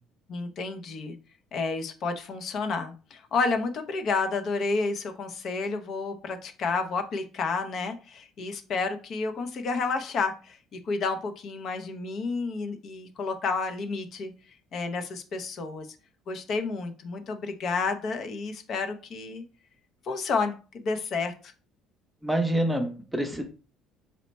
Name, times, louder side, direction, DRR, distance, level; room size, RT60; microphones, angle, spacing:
voice 1, 0.3-1.1 1.5-14.3 14.7-15.9 16.3-19.4 20.1-21.3, left 4 dB, 50° left, 6 dB, 0.5 m, -30 dB
voice 2, 22.2-23.4, right 1 dB, 5° right, 5 dB, 0.6 m, -26 dB
4.2 x 2.1 x 4.0 m, 0.36 s
cardioid pair, 130°, 0 cm